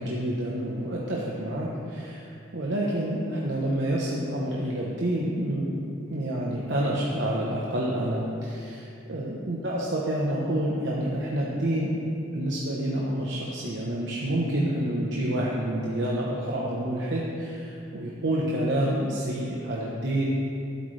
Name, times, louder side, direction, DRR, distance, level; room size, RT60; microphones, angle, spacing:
voice 1, 0.0-5.7 6.1-11.9 12.3-20.3, right 1 dB, 70° right, -4 dB, 1.0 m, -28 dB
13.0 x 8.2 x 3.3 m, 2.7 s
head